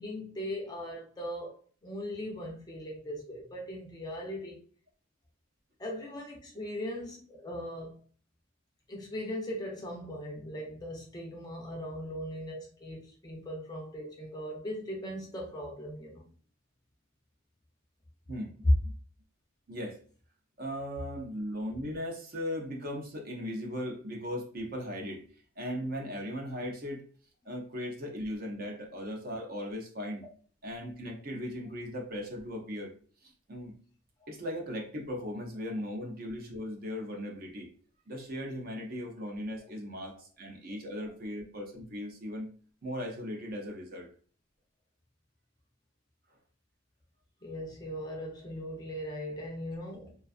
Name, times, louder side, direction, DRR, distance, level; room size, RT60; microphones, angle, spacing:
voice 1, 0.0-1.5 1.8-4.6 5.8-8.0 8.9-16.3 47.4-50.2, equal, 20° left, 0.5 m, -39 dB
voice 2, 18.3-18.9 19.7-20.0 20.6-25.2 25.6-27.0 27.5-30.2 30.6-32.9 33.2-33.7 34.3-37.7 38.1-42.5 42.8-44.1, equal, 45° right, 0.5 m, -38 dB
2.5 x 2.3 x 2.3 m
head